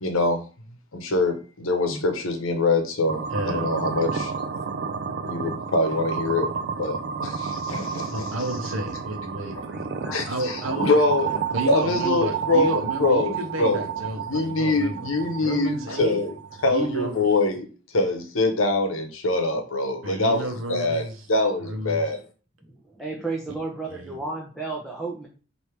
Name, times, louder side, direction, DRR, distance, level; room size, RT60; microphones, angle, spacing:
voice 1, 0.0-0.4 0.9-4.3 5.3-6.5 6.8-8.3 10.1-11.3 11.6-13.8 14.3-16.3 16.6-17.7 17.9-22.2, left 2 dB, 75° left, 0.9 m, -24 dB
sound 1, 3.1-17.1, right 6 dB, 55° right, 0.4 m, -31 dB
voice 2, 3.3-3.7 8.1-9.9 10.3-11.0 11.5-15.1 15.4-16.2 16.6-17.3 20.0-21.3 21.6-22.1 23.9-24.2, right 1 dB, 70° right, 0.9 m, -31 dB
voice 3, 9.7-10.2 10.6-10.7 22.6-25.3, right 3 dB, ahead, 0.6 m, -33 dB
3.4 x 2.7 x 4.5 m
head